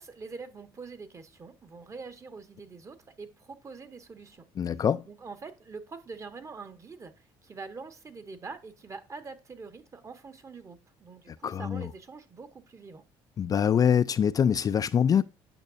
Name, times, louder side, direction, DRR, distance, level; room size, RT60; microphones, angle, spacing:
voice 1, 0.0-4.8 5.0-13.0, right 4 dB, 30° right, 1.2 m, -44 dB
voice 2, 4.6-5.0 11.4-11.9 13.4-15.2, left 8 dB, 40° left, 0.4 m, -24 dB
9.0 x 6.0 x 2.5 m
cardioid pair, 95°, 10 cm